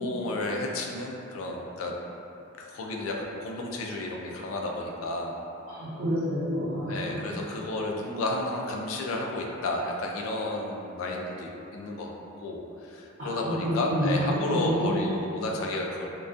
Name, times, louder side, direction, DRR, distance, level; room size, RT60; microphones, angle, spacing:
voice 1, 0.0-1.9 2.6-5.4 6.9-12.1 12.4-16.1, left 2 dB, 70° left, 1 dB, 0.3 m, -32 dB
voice 2, 5.8-7.2 13.2-14.9, equal, 70° right, -15 dB, 0.7 m, -28 dB
2.3 x 2.2 x 2.4 m, 2.8 s
head